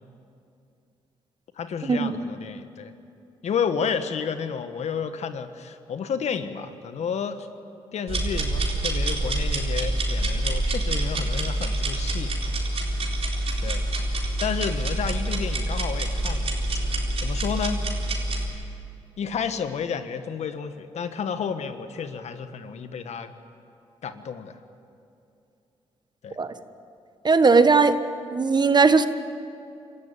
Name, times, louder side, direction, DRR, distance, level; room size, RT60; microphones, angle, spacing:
voice 1, 1.6-2.9 3.4-7.5 7.9-12.3 13.6-13.8 14.4-16.5 17.2-17.8 19.2-23.3 24.0-24.6 26.2-26.4, left 6 dB, 65° left, 10 dB, 1.3 m, -31 dB
sound 1, 8.1-18.5, right 1 dB, 55° right, 4.1 m, -26 dB
voice 2, 27.2-28.0 28.3-29.1, right 4 dB, 35° right, 11 dB, 1.3 m, -18 dB
25.5 x 14.0 x 9.1 m, 2.6 s
supercardioid pair, 50°, 12 cm